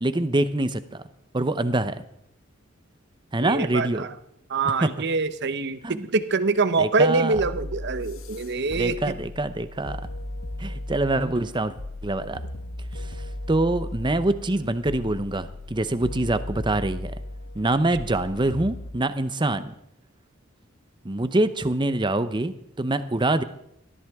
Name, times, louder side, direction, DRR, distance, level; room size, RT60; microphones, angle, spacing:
voice 1, 0.0-1.0 1.3-2.0 3.3-4.1 4.8-4.9 5.8-6.1 6.8-7.4 8.7-10.0 10.6-11.7 12.0-12.4 12.9-13.2 13.5-17.1 17.5-19.7 21.0-23.4, right 2 dB, 20° right, 12 dB, 0.7 m, -25 dB
voice 2, 3.4-4.1 4.5-9.2 11.2-11.3, right 3 dB, 55° right, 12 dB, 0.8 m, -25 dB
sound 1, 7.3-18.9, left 1 dB, 70° left, 1.1 m, -36 dB
19.0 x 14.0 x 3.6 m, 0.75 s
head